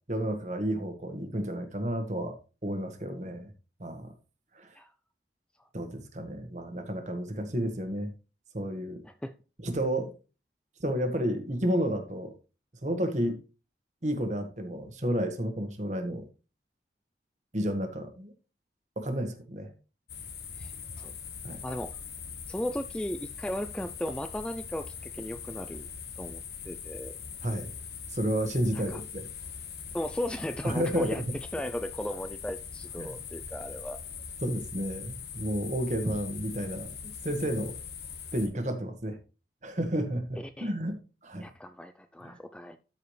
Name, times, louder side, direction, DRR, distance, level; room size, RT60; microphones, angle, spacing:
voice 1, 0.1-2.4 2.6-3.5 3.8-4.1 4.5-4.7 5.7-8.1 8.5-9.0 9.6-10.1 10.8-12.3 12.8-13.4 14.0-16.2 17.5-18.3 19.0-19.7 21.4-21.6 27.4-27.7 28.1-29.2 30.6-31.2 33.0-33.2 34.4-36.9 37.2-37.8 38.3-39.2 39.6-40.9 41.2-41.5 42.2-42.4, equal, 45° right, 1.4 m, -31 dB
sound 1, 20.1-38.5, left 6 dB, 70° left, 1.4 m, -42 dB
voice 2, 21.6-22.0 22.5-25.9 26.2-26.4 26.7-27.1 28.7-29.0 29.9-31.2 31.5-34.0 40.6-40.7 41.4-42.8, left 1 dB, 5° left, 0.3 m, -36 dB
13.0 x 4.8 x 3.2 m
head